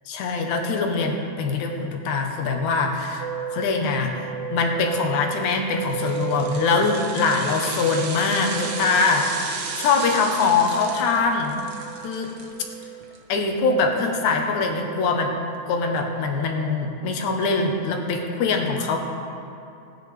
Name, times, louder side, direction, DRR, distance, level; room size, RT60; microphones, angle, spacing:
voice 1, 0.1-11.6 12.0-12.3 13.3-15.3 15.7-19.0, left 4 dB, 90° left, 2 dB, 2.5 m, -23 dB
sound 1, 3.2-16.2, right 9 dB, 85° right, 2.0 m, -36 dB
sound 2, 5.9-13.2 13.5-13.6, right 4 dB, 60° right, 1.1 m, -35 dB
19.0 x 10.0 x 3.5 m, 2.7 s
omnidirectional pair, 3.3 m